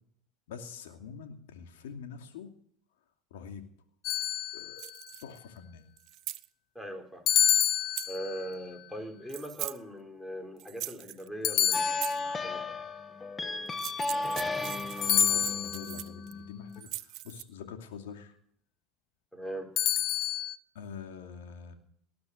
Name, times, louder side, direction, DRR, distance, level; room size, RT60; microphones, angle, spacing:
voice 1, 0.5-2.5 3.3-3.6 4.5-4.9 5.2-5.8 14.8-18.4 20.7-21.7, left 6 dB, 80° left, 5 dB, 2.6 m, -45 dB
sound 1, 4.0-5.0 7.3-8.5 11.4-12.5 15.0-16.0 19.8-20.5, left 10 dB, 55° left, 0.9 m, -28 dB
sound 2, 4.8-5.4 6.0-6.5 7.6-8.2 9.3-9.8 10.6-11.3 11.8-12.2 13.7-16.3 16.7-17.4, right 16 dB, 60° right, 0.8 m, -40 dB
voice 2, 6.7-7.3 8.1-12.6 19.3-19.8, right 1 dB, 5° left, 5 dB, 4.0 m, -40 dB
sound 3, 11.7-16.8, left 2 dB, 25° left, 1.3 m, -35 dB
19.5 x 10.5 x 6.6 m, 0.64 s
hypercardioid pair, 85°, 0 cm